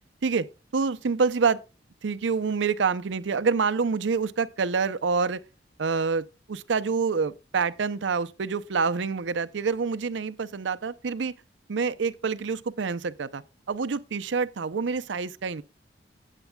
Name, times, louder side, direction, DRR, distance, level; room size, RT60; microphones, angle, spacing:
voice 1, 0.2-1.6 2.0-5.4 5.8-11.3 11.7-13.4 13.7-15.6, right 5 dB, 85° right, 0.6 m, -27 dB
19.0 x 9.0 x 2.3 m
head